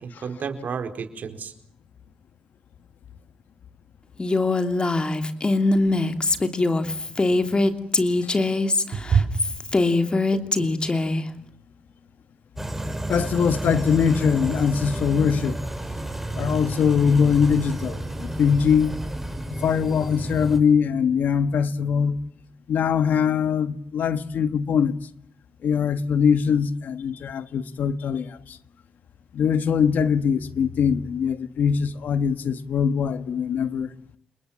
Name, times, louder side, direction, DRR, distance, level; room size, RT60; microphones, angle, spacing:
voice 1, 0.0-1.5 8.9-9.4 10.3-10.7, right 6 dB, 70° right, 4.4 m, -27 dB
Female speech woman speaking, 4.2-11.2, left 2 dB, 30° left, 3.0 m, -22 dB
sound 1, 12.6-20.6, right 1 dB, 5° right, 5.3 m, -31 dB
voice 2, 13.1-15.6 16.4-19.0 19.6-22.2 22.7-25.0 25.6-28.6 29.3-33.9, left 7 dB, 75° left, 1.5 m, -22 dB
30.0 x 21.0 x 7.5 m
cardioid pair, 60°, 3 cm